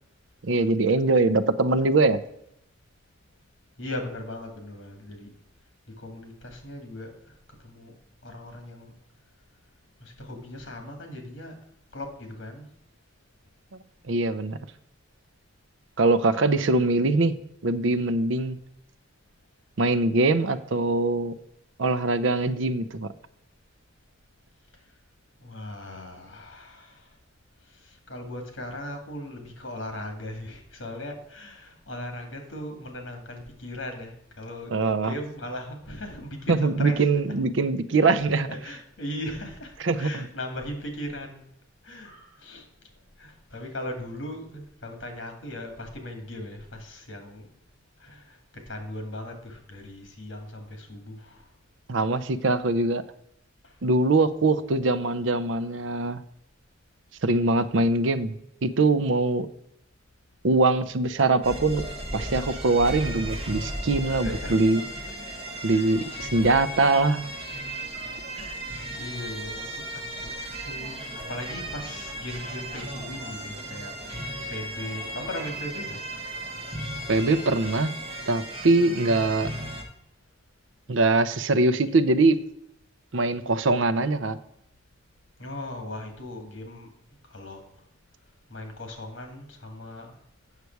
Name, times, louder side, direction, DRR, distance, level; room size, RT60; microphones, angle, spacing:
voice 1, 0.4-2.2 14.1-14.6 16.0-17.3 17.6-18.6 19.8-21.3 21.8-23.1 34.7-35.1 36.5-38.5 39.8-40.3 51.9-53.0 53.8-56.2 57.2-58.3 58.6-59.5 60.4-61.9 62.1-64.8 65.6-67.2 77.1-77.9 78.3-79.5 80.9-82.4 83.1-84.4, right 3 dB, 75° right, 13 dB, 0.6 m, -22 dB
voice 2, 3.8-5.3 6.0-7.1 7.6-7.9 8.2-9.0 10.0-11.6 11.9-12.7 25.4-27.0 27.9-37.0 38.0-38.1 38.5-41.4 41.8-42.6 43.2-47.5 48.0-48.4 48.7-51.4 64.1-64.7 65.7-66.2 68.3-68.5 69.0-70.0 70.4-76.0 85.4-86.9 87.3-87.6 88.5-90.2, left 1 dB, 70° left, 4 dB, 2.2 m, -38 dB
sound 1, 61.4-79.8, right 1 dB, 30° right, 1.6 m, -36 dB
8.3 x 6.7 x 4.6 m, 0.76 s
head